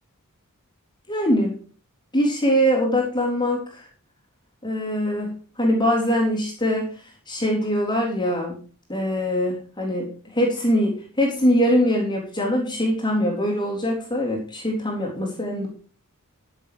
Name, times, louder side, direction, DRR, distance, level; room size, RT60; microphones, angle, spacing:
voice 1, 1.1-1.5 2.1-3.9 4.6-6.9 7.3-8.5 8.9-15.7, equal, 20° left, -2 dB, 3.6 m, -23 dB
14.0 x 7.0 x 5.1 m, 0.40 s
head